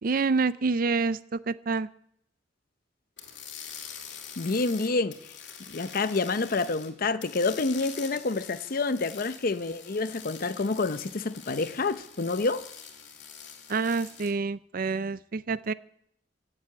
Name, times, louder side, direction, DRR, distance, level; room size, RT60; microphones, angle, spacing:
voice 1, 0.0-1.9 13.7-15.7, right 4 dB, 50° right, 0.5 m, -27 dB
sound 1, 3.2-6.9 7.2-14.3, left 7 dB, 80° left, 2.6 m, -45 dB
voice 2, 4.4-5.2 5.7-12.6, left 3 dB, 50° left, 0.7 m, -28 dB
14.5 x 7.6 x 8.6 m
head